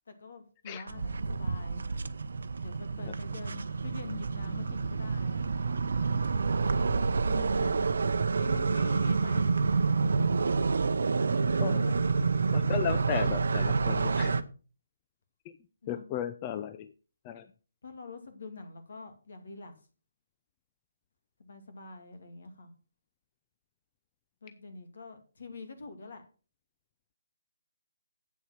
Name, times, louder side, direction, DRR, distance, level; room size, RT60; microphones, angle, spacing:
voice 1, 0.1-1.9 2.6-5.8 6.9-7.8 8.3-9.5 11.7-12.0 15.8-16.1 17.8-19.7 21.4-22.7 24.4-26.2, left 3 dB, 65° left, 9 dB, 2.4 m, -45 dB
sound 1, 0.9-14.4, right 4 dB, 70° right, 0.7 m, -28 dB
voice 2, 11.6-11.9 12.5-14.3 15.5-15.6 15.9-16.9 17.2-17.5, left 10 dB, 25° left, 10 dB, 0.6 m, -35 dB
8.4 x 7.1 x 5.9 m, 0.37 s
figure-of-eight pair, 150°, 0 cm